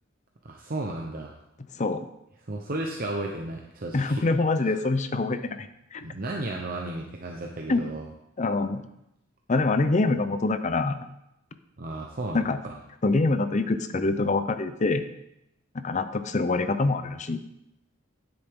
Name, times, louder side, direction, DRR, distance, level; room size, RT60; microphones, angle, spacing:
voice 1, 0.4-1.3 2.5-4.2 4.6-4.8 6.0-8.1 11.8-12.8, right 2 dB, 45° right, 1 dB, 0.9 m, -34 dB
voice 2, 3.9-5.7 5.9-6.0 7.7-7.9 8.4-8.8 9.5-11.0 12.3-12.6 13.0-15.1 15.7-17.4, left 3 dB, 35° left, 10 dB, 0.6 m, -25 dB
9.9 x 8.2 x 3.7 m, 0.83 s
head